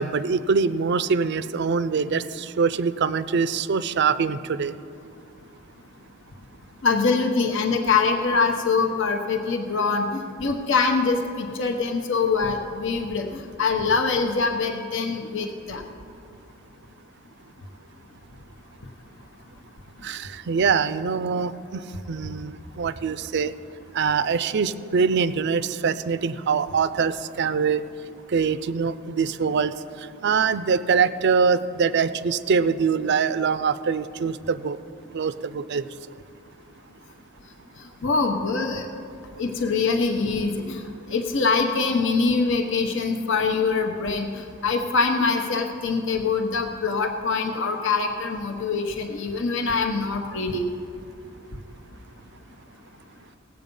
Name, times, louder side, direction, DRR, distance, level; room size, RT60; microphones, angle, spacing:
voice 1, 0.0-4.7 20.0-23.5 23.9-27.8 28.3-34.8 35.1-35.9, right 5 dB, 55° right, 14 dB, 0.4 m, -24 dB
voice 2, 6.8-15.8 38.0-38.8 39.4-40.8 41.1-50.7, left 4 dB, 60° left, 4 dB, 0.9 m, -24 dB
18.5 x 8.0 x 5.4 m, 2.5 s
head